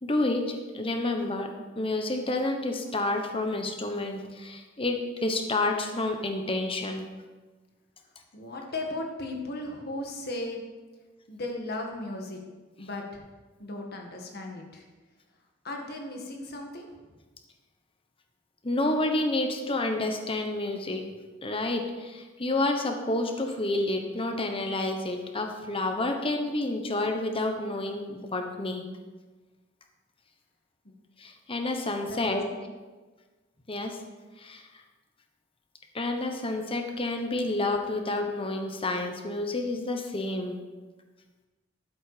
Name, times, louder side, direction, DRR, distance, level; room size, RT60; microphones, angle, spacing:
voice 1, 0.0-7.1 18.6-21.0 21.4-28.8 31.2-32.4 33.7-34.0 34.4-34.8 35.9-40.6, left 2 dB, 30° left, 4 dB, 1.2 m, -29 dB
voice 2, 8.3-10.6 11.3-12.4 12.8-13.2 13.6-14.8 15.6-16.9 30.8-30.9 32.1-32.2, left 2 dB, 55° left, 1 dB, 1.9 m, -36 dB
12.5 x 7.9 x 5.1 m, 1.3 s
head